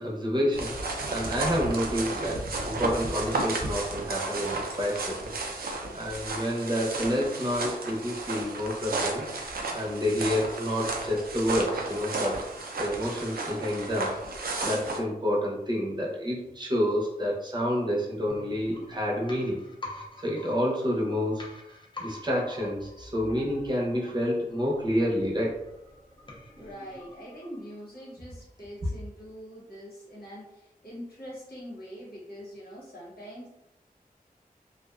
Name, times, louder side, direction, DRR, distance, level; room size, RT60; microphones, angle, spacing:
voice 1, 0.0-5.4 5.9-12.4 12.8-14.1 14.6-19.6 20.2-21.5 22.0-25.6, equal, 30° right, -4 dB, 0.7 m, -29 dB
sound 1, 0.5-15.0, right 2 dB, 80° right, 0.4 m, -33 dB
sound 2, 18.3-28.0 28.3-28.4, left 2 dB, 30° left, 0.5 m, -47 dB
voice 2, 26.6-33.5, equal, 90° left, -6 dB, 1.1 m, -43 dB
2.5 x 2.1 x 2.3 m, 0.88 s
wide cardioid pair, 90°, 15 cm